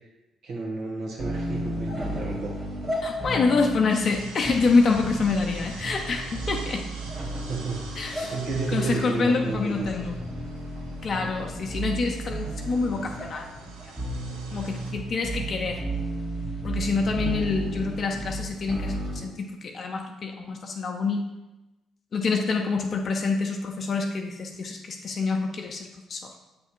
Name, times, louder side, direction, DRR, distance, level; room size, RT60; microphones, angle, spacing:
voice 1, 0.4-2.5 7.5-10.1, right 3 dB, 65° right, -2 dB, 1.6 m, -32 dB
sound 1, 1.2-19.2, right 1 dB, 30° right, 1.8 m, -33 dB
voice 2, 3.0-6.9 8.0-8.3 8.7-10.2 11.0-13.9 14.5-15.8 16.6-21.2 22.1-26.2, left 4 dB, 50° left, 2 dB, 0.7 m, -26 dB
sound 2, 3.9-14.9, right 3 dB, 85° right, 0.8 m, -46 dB
7.3 x 3.4 x 4.5 m, 1.0 s
hypercardioid pair, 50°, 0 cm